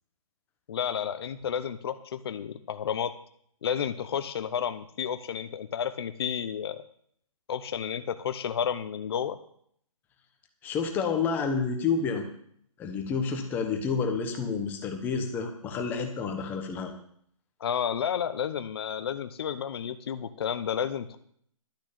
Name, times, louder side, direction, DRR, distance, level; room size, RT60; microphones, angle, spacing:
voice 1, 0.7-3.1 3.6-6.8 7.5-9.4 17.6-21.2, left 8 dB, 45° left, 9 dB, 0.8 m, -31 dB
voice 2, 10.6-12.3 12.8-16.9, left 5 dB, 10° left, 4 dB, 1.0 m, -29 dB
12.0 x 6.2 x 8.6 m, 0.66 s
hypercardioid pair, 165°, 18 cm